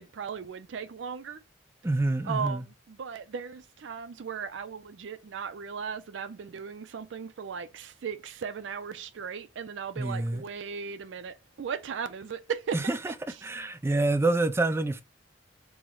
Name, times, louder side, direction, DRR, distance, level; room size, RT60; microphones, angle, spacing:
voice 1, 0.0-1.4 2.2-12.9, right 6 dB, 80° right, 0.4 m, -37 dB
voice 2, 1.8-2.6 10.0-10.4 12.7-13.1 13.4-15.0, right 2 dB, 15° right, 0.3 m, -27 dB
4.6 x 2.1 x 3.7 m
head